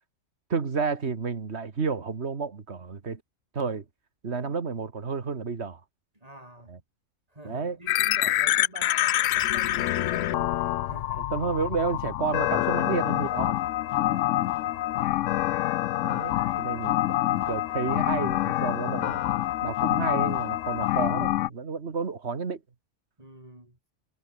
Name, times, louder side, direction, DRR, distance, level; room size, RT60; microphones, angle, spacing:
voice 1, 0.5-3.2 3.5-3.9 4.2-5.8 6.7-6.8 7.4-7.8 11.2-13.6 16.0-17.0 17.3-19.2 19.6-22.6, right 5 dB, 55° right, 2.0 m, -31 dB
voice 2, 6.1-6.7 7.3-11.3 12.7-13.1 13.9-14.5 16.3-16.7 23.2-23.8, right 1 dB, 30° right, 6.1 m, -46 dB
sound 1, 7.9-21.5, left 14 dB, 75° left, 0.9 m, -26 dB
omnidirectional pair, 1.3 m